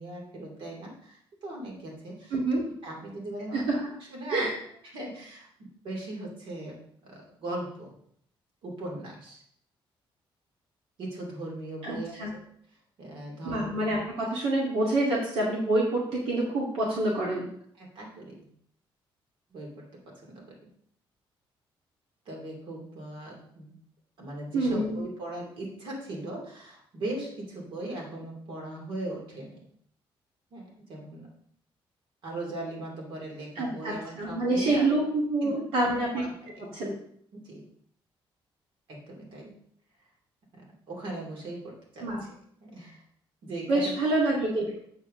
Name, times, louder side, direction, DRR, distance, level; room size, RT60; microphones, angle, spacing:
voice 1, 0.0-2.4 2.8-3.6 4.1-4.5 4.9-7.9 8.6-9.4 11.0-12.2 13.0-13.7 17.8-18.5 19.5-20.5 22.3-23.7 24.2-29.7 30.5-31.3 32.2-34.9 35.4-35.5 36.1-36.8 37.3-37.7 38.9-39.6 40.5-42.3 42.6-43.0 43.4-44.0, right 1 dB, 65° right, -1 dB, 2.7 m, -39 dB
voice 2, 2.3-2.6 3.5-3.8 4.3-4.5 11.8-12.3 13.4-17.5 24.5-25.0 33.6-36.2 36.7-36.9 42.0-42.2 43.7-44.8, right 2 dB, 85° right, -5 dB, 2.1 m, -27 dB
8.0 x 6.9 x 3.8 m, 0.64 s
cardioid pair, 170°, 9 cm